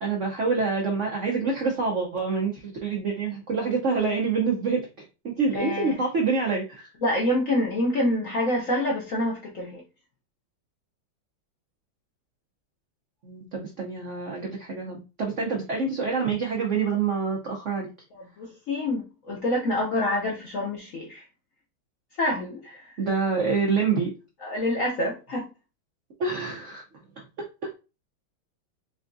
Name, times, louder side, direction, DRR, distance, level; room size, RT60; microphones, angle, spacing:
voice 1, 0.0-6.9 13.2-17.9 23.0-24.1 26.2-26.8 27.2-27.3, right 4 dB, 75° right, 0.7 m, -26 dB
voice 2, 5.5-6.0 7.0-9.8 18.1-21.2 22.2-22.9 24.4-25.5, left 1 dB, 65° left, 0.8 m, -27 dB
3.7 x 3.4 x 2.6 m
omnidirectional pair, 2.2 m